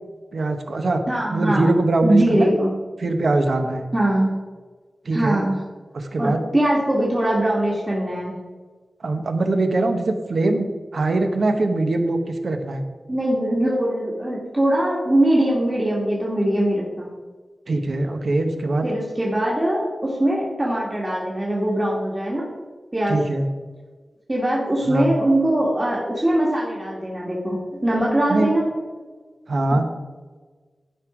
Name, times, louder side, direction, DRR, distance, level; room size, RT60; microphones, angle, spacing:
voice 1, 0.3-1.0 1.3-2.5 3.0-3.9 5.0-5.4 5.9-6.4 9.0-10.7 10.9-12.8 17.7-18.9 23.1-23.5 24.9-25.1 28.3-28.5 29.5-29.9, right 2 dB, 65° right, 6 dB, 1.0 m, -22 dB
voice 2, 1.1-1.7 2.0-2.7 3.9-4.3 5.1-5.6 6.2-8.3 13.1-17.1 18.8-22.5 22.9-23.2 24.3-28.7, right 1 dB, 20° right, -5 dB, 1.6 m, -21 dB
12.0 x 5.4 x 4.8 m, 1.4 s
wide cardioid pair, 115°, 0 cm